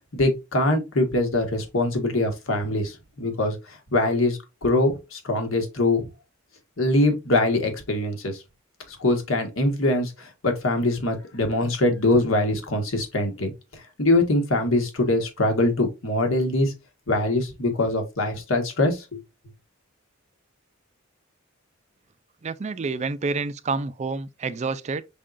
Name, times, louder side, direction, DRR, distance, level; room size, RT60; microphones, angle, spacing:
voice 1, 0.1-6.1 6.8-8.4 8.9-16.7 17.1-19.2, left 2 dB, 75° left, 1.5 m, -23 dB
voice 2, 22.4-25.0, right 4 dB, 35° right, 0.4 m, -28 dB
5.5 x 3.6 x 2.5 m
head